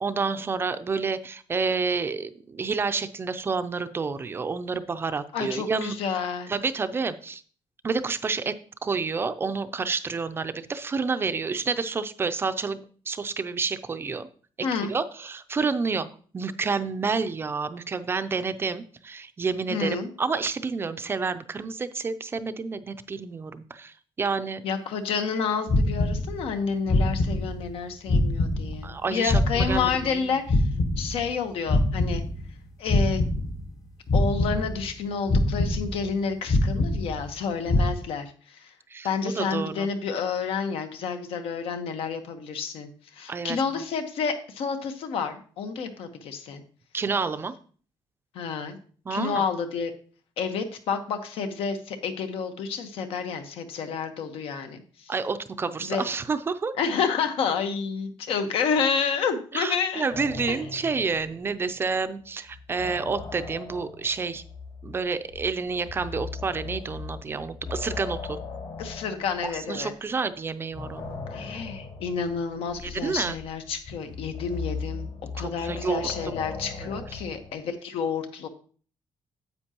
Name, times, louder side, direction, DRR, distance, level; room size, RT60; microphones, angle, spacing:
voice 1, 0.0-5.9 6.5-7.4 7.8-8.6 8.8-14.3 14.8-16.1 16.3-24.6 28.8-30.3 37.8-37.9 38.9-39.1 39.3-39.9 43.3-43.6 46.9-47.5 49.1-49.4 55.1-56.7 59.5-64.4 64.8-68.4 69.4-71.2 72.8-73.4 75.4-76.5 76.8-76.9, right 4 dB, 25° right, 11 dB, 0.4 m, -29 dB
voice 2, 5.3-6.5 14.6-14.9 19.7-20.1 24.6-30.6 31.0-32.2 32.8-33.2 34.1-38.7 39.0-46.6 48.3-48.8 49.1-49.9 50.4-55.1 55.8-56.0 56.8-60.0 60.5-60.6 68.8-69.9 71.3-78.5, left 6 dB, 80° left, 7 dB, 1.1 m, -29 dB
sound 1, 25.7-26.6 26.9-27.8 28.1-30.2 30.5-32.6 32.9-33.8 34.1-35.0 35.3-36.2 36.5-37.4 37.7-37.9, left 1 dB, 40° left, 0.9 m, -24 dB
sound 2, 60.1-62.0 62.2-70.2 70.7-77.6, left 4 dB, 55° left, 3.2 m, -39 dB
9.7 x 8.0 x 2.9 m, 0.43 s
cardioid pair, 165°, 9 cm